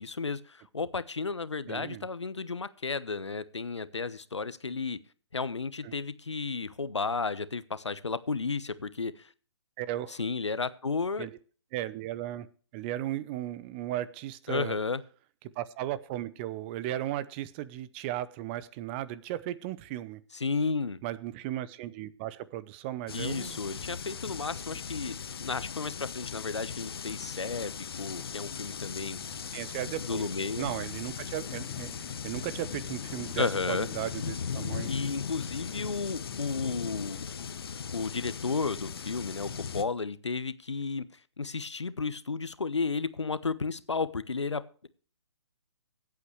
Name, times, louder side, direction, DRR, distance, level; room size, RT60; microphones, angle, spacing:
voice 1, 0.0-5.0 5.3-9.3 10.1-11.3 14.5-15.0 20.3-21.0 23.1-29.2 30.0-30.7 33.4-33.9 34.9-37.3 37.9-41.0 41.4-44.9, left 4 dB, 75° left, 15 dB, 1.1 m, -33 dB
voice 2, 1.7-2.1 5.8-5.9 9.8-10.2 11.2-11.4 11.7-12.5 12.7-14.8 15.6-20.2 21.0-23.6 29.5-30.3 30.6-31.9 32.2-34.9, right 13 dB, 25° right, 17 dB, 0.7 m, -36 dB
sound 1, 23.1-39.8, left 6 dB, 55° left, 1.2 m, -38 dB
sound 2, 27.3-37.8, left 1 dB, ahead, 5.0 m, -60 dB
sound 3, 31.5-37.9, left 12 dB, 30° left, 0.8 m, -48 dB
24.0 x 8.5 x 3.2 m, 0.42 s
figure-of-eight pair, 135°, 15 cm